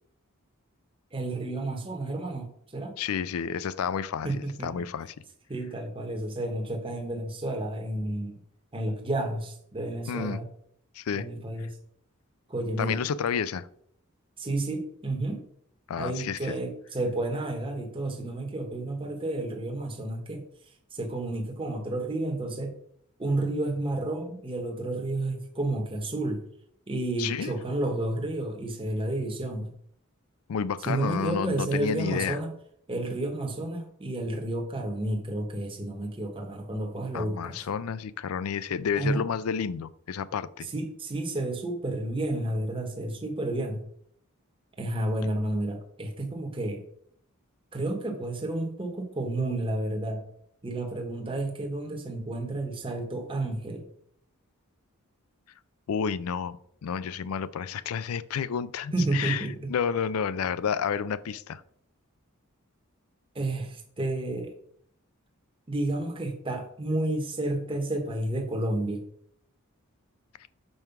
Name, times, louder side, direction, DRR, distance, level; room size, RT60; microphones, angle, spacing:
voice 1, 1.1-3.0 4.2-4.8 5.5-8.4 8.7-10.5 11.1-11.8 12.5-13.0 14.4-15.4 16.0-20.4 20.9-22.8 23.2-26.4 26.9-29.7 30.8-32.5 32.9-37.7 38.9-39.3 40.6-43.8 44.8-46.8 47.7-50.3 50.6-53.9 58.9-59.7 63.3-64.5 65.7-69.0, right 2 dB, 25° right, 3 dB, 1.0 m, -31 dB
voice 2, 3.0-5.1 10.1-10.4 11.0-11.3 11.6-11.7 12.8-13.7 15.9-16.5 27.2-27.5 30.5-32.4 37.1-40.7 55.9-56.6 56.8-61.6, left 7 dB, 80° left, 17 dB, 0.4 m, -30 dB
5.4 x 4.6 x 5.8 m, 0.67 s
head